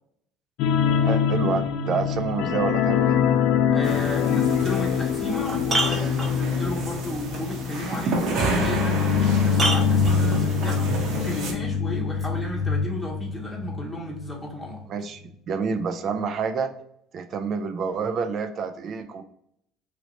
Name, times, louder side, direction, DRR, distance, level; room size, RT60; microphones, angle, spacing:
sound 1, 0.6-13.9 14.2-14.3 14.7-14.8, left 7 dB, 70° left, 0.3 m, -24 dB
voice 1, 1.0-3.2 14.9-16.7 17.1-19.2, right 5 dB, 50° right, 8 dB, 0.5 m, -28 dB
voice 2, 3.7-14.8, equal, 10° left, -3 dB, 0.9 m, -34 dB
sound 2, 3.8-11.5, right 3 dB, 70° right, 0.9 m, -30 dB
sound 3, 4.6-4.7 5.2-6.7 8.7-8.8 9.5-10.8 12.2-12.3, right 2 dB, 25° right, 1.1 m, -28 dB
3.1 x 3.0 x 2.8 m, 0.73 s
supercardioid pair, 105°, 0 cm